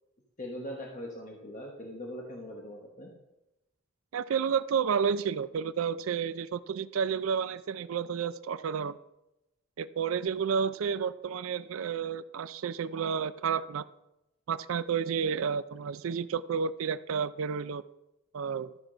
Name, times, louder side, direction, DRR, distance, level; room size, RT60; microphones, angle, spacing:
voice 1, 0.4-3.1 10.9-11.0, equal, 40° left, 0 dB, 1.2 m, -41 dB
voice 2, 4.1-9.0 9.8-13.8 14.5-17.8 18.3-18.7, right 7 dB, 80° right, 14 dB, 0.4 m, -31 dB
12.5 x 6.0 x 5.0 m, 0.92 s
head